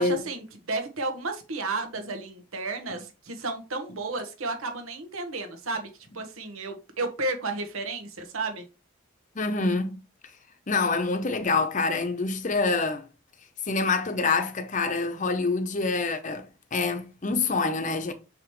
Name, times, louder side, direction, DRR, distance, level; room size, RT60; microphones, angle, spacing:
voice 1, 0.0-5.9 6.1-8.6, right 3 dB, 85° right, 1.3 m, -32 dB
voice 2, 9.3-10.0 10.7-13.0 13.7-18.1, left 3 dB, 35° left, 0.8 m, -26 dB
6.2 x 4.9 x 3.1 m
head